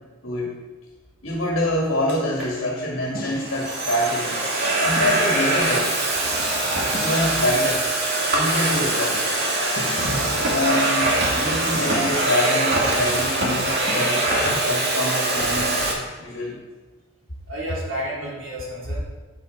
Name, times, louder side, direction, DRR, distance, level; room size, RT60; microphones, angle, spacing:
voice 1, 1.2-4.4 4.8-5.9 6.9-7.9 8.3-9.2 9.9-15.8 16.2-16.6, left 1 dB, 70° left, -2 dB, 1.9 m, -26 dB
sound 1, 1.3-1.4 3.1-3.7 5.0-5.6 6.9-7.5 9.8-10.4 11.7-12.3 13.9-14.5, left 2 dB, 45° left, 1.8 m, -36 dB
Domestic sounds home sounds, 2.1-2.5 3.2-15.9, right 2 dB, 50° right, 2.1 m, -23 dB
Liquid, 12.0-14.9, left 1 dB, ahead, 2.0 m, -41 dB
voice 2, 17.5-19.0, equal, 70° right, -5 dB, 3.4 m, -31 dB
9.1 x 8.0 x 4.7 m, 1.2 s
head